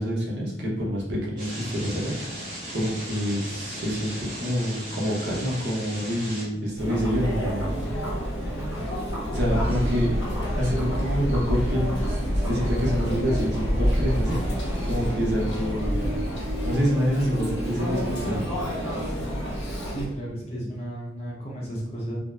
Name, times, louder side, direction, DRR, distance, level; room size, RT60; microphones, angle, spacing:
voice 1, 0.0-2.4 2.7-7.8 9.3-16.3 16.6-18.5, equal, 65° right, -4 dB, 0.8 m, -27 dB
sound 1, 1.4-6.4, equal, 45° right, 1.2 m, -37 dB
Chatter, 6.8-20.1, equal, 80° left, 0.9 m, -30 dB
sound 2, 9.4-16.7, equal, 15° right, 1.0 m, -28 dB
voice 2, 19.9-22.2, right 1 dB, 35° left, -4 dB, 0.6 m, -33 dB
2.7 x 2.0 x 2.2 m, 0.88 s
head